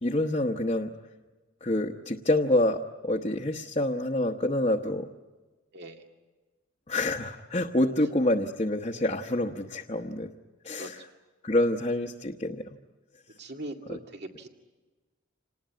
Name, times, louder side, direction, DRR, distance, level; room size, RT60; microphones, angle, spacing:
voice 1, 0.0-0.9 1.6-5.1 6.9-10.3 10.6-10.9 11.4-12.8 13.9-14.0, left 1 dB, 30° left, 0 dB, 1.0 m, -27 dB
voice 2, 5.7-6.1 10.8-11.1 13.4-14.5, right 1 dB, 55° right, 4 dB, 2.4 m, -41 dB
27.0 x 19.5 x 9.5 m, 1.3 s
head